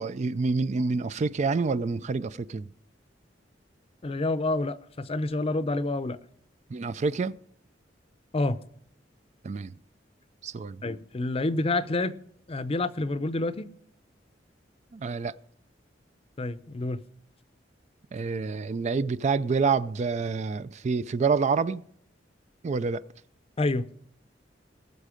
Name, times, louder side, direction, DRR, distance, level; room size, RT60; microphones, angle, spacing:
voice 1, 0.0-2.7 6.7-7.4 9.4-9.7 10.4-10.8 14.9-15.3 18.1-21.8 22.6-23.0, right 4 dB, 40° right, 0.4 m, -27 dB
voice 2, 4.0-6.2 8.3-8.6 10.8-12.1 12.5-13.7 16.4-17.0 23.6-23.9, left 2 dB, 35° left, 0.6 m, -28 dB
19.5 x 6.5 x 5.0 m
head